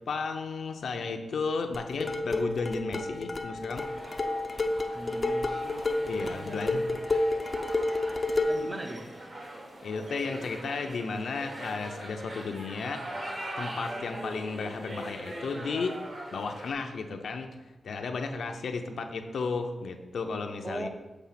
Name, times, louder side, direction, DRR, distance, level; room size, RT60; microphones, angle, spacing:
voice 1, 0.1-3.9 6.1-6.9 9.8-13.0 13.6-16.0 16.3-17.6 17.8-20.9, left 4 dB, 80° left, 5 dB, 0.6 m, -33 dB
sound 1, 1.7-8.7, left 2 dB, 35° left, 0.4 m, -30 dB
sound 2, 3.7-16.7, right 1 dB, 45° right, 1.3 m, -42 dB
voice 2, 4.9-6.8 8.5-9.1 20.6-20.9, right 1 dB, 20° right, 6 dB, 0.6 m, -40 dB
7.2 x 3.4 x 5.7 m, 1.1 s
wide cardioid pair, 145°, 0 cm